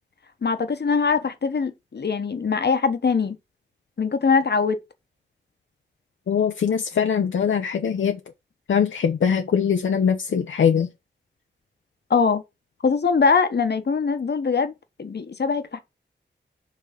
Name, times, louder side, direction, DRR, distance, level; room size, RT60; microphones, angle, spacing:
voice 1, 0.4-3.4 4.0-4.8 12.1-12.4 12.8-14.7 15.0-15.8, left 5 dB, 60° left, 1.0 m, -22 dB
voice 2, 6.3-8.2 8.7-10.9, left 7 dB, 85° left, 0.6 m, -22 dB
5.8 x 3.2 x 5.7 m
wide cardioid pair, 60°, 20 cm